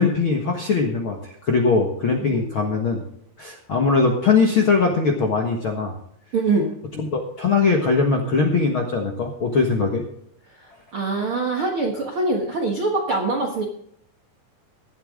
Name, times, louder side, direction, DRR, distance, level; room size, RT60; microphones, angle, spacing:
voice 1, 0.0-3.0 3.4-5.9 7.1-10.0, left 4 dB, 55° left, 1 dB, 1.4 m, -21 dB
voice 2, 2.2-2.5 6.3-6.7 10.5-13.6, right 3 dB, 60° right, 1 dB, 1.4 m, -24 dB
16.5 x 12.0 x 3.7 m, 0.68 s
omnidirectional pair, 4.6 m